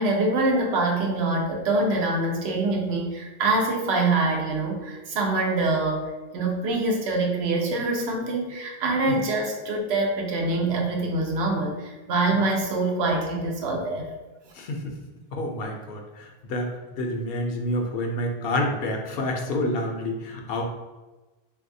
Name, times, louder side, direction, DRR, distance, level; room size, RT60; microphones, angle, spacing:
voice 1, 0.0-14.1, right 2 dB, 85° right, 1 dB, 0.9 m, -25 dB
voice 2, 14.5-15.0 15.3-20.6, left 1 dB, 70° left, 2 dB, 0.7 m, -28 dB
3.4 x 2.6 x 2.6 m, 1.2 s
omnidirectional pair, 1.0 m